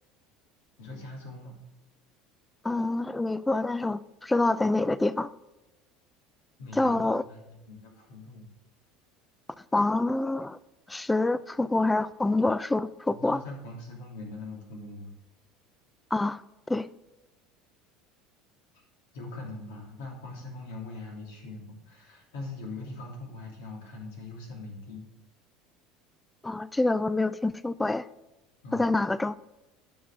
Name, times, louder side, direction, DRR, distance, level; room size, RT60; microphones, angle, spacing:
voice 1, 0.8-1.6 6.6-8.5 13.1-15.1 18.7-18.8 19.1-25.1 28.6-28.8, left 2 dB, 85° left, 3.0 m, -42 dB
voice 2, 2.6-5.3 6.7-7.2 9.7-10.6 10.9-13.4 16.1-16.4 16.7-16.9 26.4-28.1 28.7-29.3, left 2 dB, 10° left, 0.3 m, -26 dB
9.2 x 5.8 x 4.9 m
supercardioid pair, 95°, 0 cm